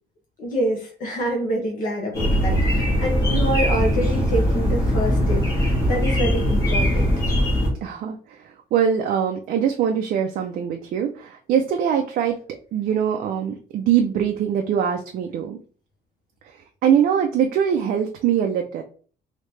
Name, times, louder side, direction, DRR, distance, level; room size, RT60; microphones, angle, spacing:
voice 1, 0.4-7.1, right 1 dB, 50° left, -1 dB, 0.9 m, -26 dB
sound 1, 2.1-7.7, equal, 20° left, 1.2 m, -20 dB
voice 2, 7.8-12.4 12.7-15.6 16.4-18.8, right 8 dB, 55° right, 3 dB, 0.4 m, -22 dB
3.1 x 2.8 x 3.2 m, 0.42 s
cardioid pair, 175°, 17 cm